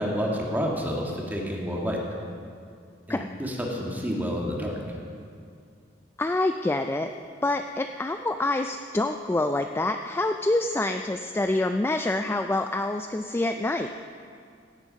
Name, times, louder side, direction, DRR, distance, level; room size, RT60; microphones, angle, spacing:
voice 1, 0.0-2.0 3.1-4.8, equal, 10° right, -2 dB, 1.7 m, -29 dB
voice 2, 6.2-7.1 7.4-13.9, left 2 dB, 10° left, 7 dB, 0.3 m, -26 dB
16.5 x 8.5 x 5.2 m, 2.3 s
head